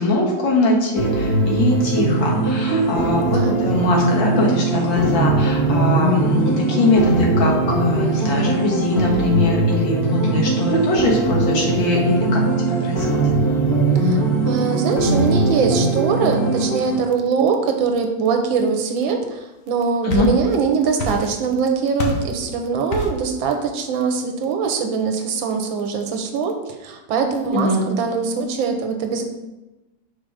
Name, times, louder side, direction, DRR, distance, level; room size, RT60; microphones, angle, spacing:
voice 1, 0.0-13.1 20.0-20.3 27.5-27.8, left 2 dB, 75° left, -2 dB, 2.1 m, -21 dB
sound 1, 1.0-17.0, right 2 dB, 10° left, 1.6 m, -20 dB
voice 2, 3.3-3.7 13.9-26.6 26.8-29.2, right 5 dB, 85° right, 5 dB, 1.6 m, -22 dB
sound 2, 19.7-20.6 21.0-21.6 22.0-22.3 22.9-23.3, left 1 dB, 50° left, 1.2 m, -26 dB
6.3 x 4.0 x 4.9 m, 1.1 s
omnidirectional pair, 2.1 m